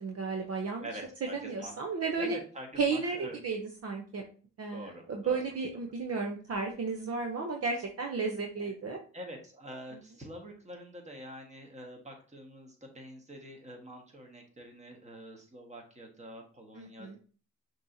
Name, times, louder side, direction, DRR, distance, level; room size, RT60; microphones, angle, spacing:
voice 1, 0.0-0.9 1.2-2.4 2.8-4.2 4.6-9.0 16.7-17.2, right 4 dB, 50° right, 1 dB, 0.7 m, -33 dB
voice 2, 0.8-1.7 2.2-3.4 4.7-5.4 8.6-8.7 9.1-17.2, equal, 20° right, 2 dB, 1.4 m, -46 dB
5.9 x 3.0 x 2.7 m, 0.40 s
cardioid pair, 80°, 32 cm